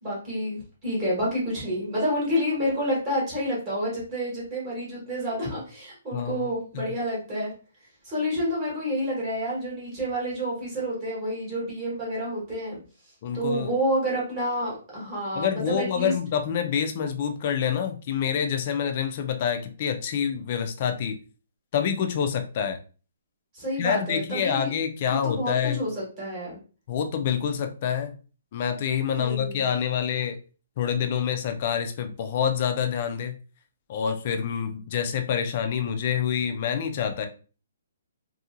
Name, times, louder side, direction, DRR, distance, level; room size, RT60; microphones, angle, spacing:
voice 1, 0.0-7.5 8.0-12.8 13.3-16.1 23.5-24.7 25.1-26.6 29.1-29.7, equal, 20° right, -6 dB, 1.2 m, -29 dB
voice 2, 13.2-13.7 15.3-21.2 21.7-22.8 23.8-25.8 26.9-28.1 28.5-30.4 30.8-33.4 33.9-37.3, left 8 dB, 30° left, 7 dB, 0.4 m, -27 dB
2.7 x 2.7 x 2.5 m, 0.37 s
hypercardioid pair, 175°, 0 cm